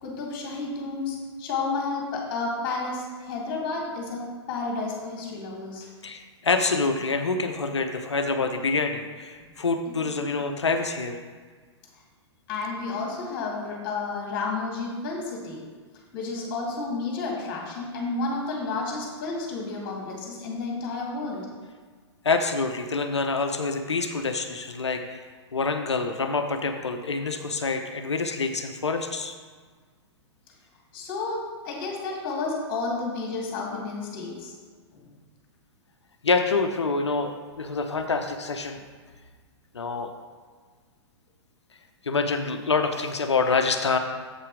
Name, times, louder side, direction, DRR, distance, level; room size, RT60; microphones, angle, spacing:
voice 1, 0.0-5.9 10.2-10.3 12.5-15.6 16.1-21.5 30.9-34.5 34.9-35.1, left 3 dB, 35° left, -1 dB, 2.2 m, -31 dB
voice 2, 6.0-11.2 22.2-25.3 25.5-29.3 36.2-38.8 39.7-40.1 42.0-44.0, left 4 dB, 75° left, 6 dB, 0.7 m, -26 dB
7.7 x 5.7 x 4.8 m, 1.5 s
figure-of-eight pair, 110°, 15 cm